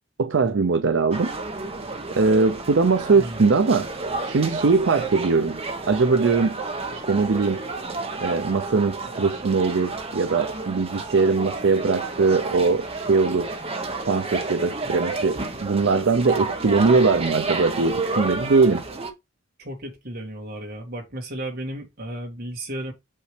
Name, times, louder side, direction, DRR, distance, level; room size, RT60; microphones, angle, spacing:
voice 1, 0.2-1.3 2.1-3.9 4.2-5.6 5.9-6.6 6.9-7.6 8.2-13.5 14.1-18.8, right 4 dB, 70° right, 0.6 m, -21 dB
sound 1, 1.1-19.1, right 3 dB, 30° right, 1.2 m, -31 dB
voice 2, 3.1-3.5 19.6-22.9, right 1 dB, 50° right, 2.1 m, -34 dB
6.6 x 5.4 x 3.3 m
head